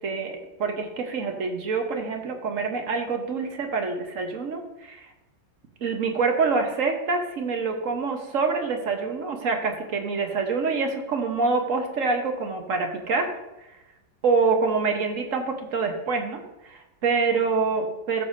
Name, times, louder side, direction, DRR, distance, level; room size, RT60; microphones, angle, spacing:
voice 1, 0.0-5.1 5.8-13.3 14.2-18.2, right 4 dB, 50° right, 4 dB, 1.2 m, -26 dB
14.0 x 6.8 x 2.6 m, 0.96 s
omnidirectional pair, 2.0 m